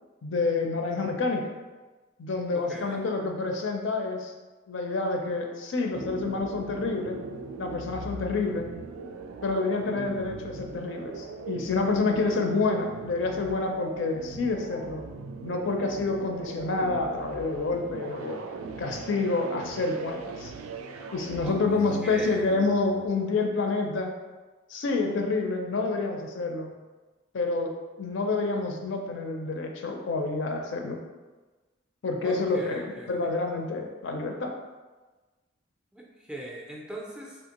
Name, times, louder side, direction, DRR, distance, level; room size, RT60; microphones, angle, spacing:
voice 1, 0.2-1.5 2.2-4.3 4.7-7.2 7.6-8.7 9.4-15.0 15.4-18.4 18.8-20.5 21.1-24.1 24.7-26.7 27.3-31.0 32.0-34.5, left 3 dB, 65° left, 3 dB, 0.4 m, -28 dB
voice 2, 2.5-3.0 21.4-21.6 22.0-22.5 32.2-33.3 35.9-37.4, right 1 dB, 5° right, -3 dB, 0.3 m, -40 dB
sound 1, 5.9-23.1, right 3 dB, 85° right, 0.3 m, -40 dB
3.4 x 2.7 x 2.9 m, 1.3 s
head